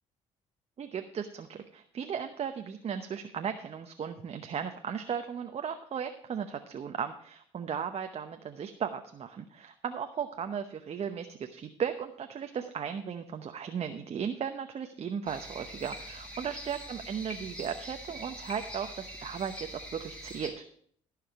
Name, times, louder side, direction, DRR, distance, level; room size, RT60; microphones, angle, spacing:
voice 1, 0.8-20.6, right 7 dB, 45° right, 6 dB, 0.8 m, -36 dB
sound 1, 15.3-20.5, equal, 10° left, 4.5 m, -44 dB
14.5 x 5.0 x 5.9 m, 0.62 s
supercardioid pair, 65°, 15 cm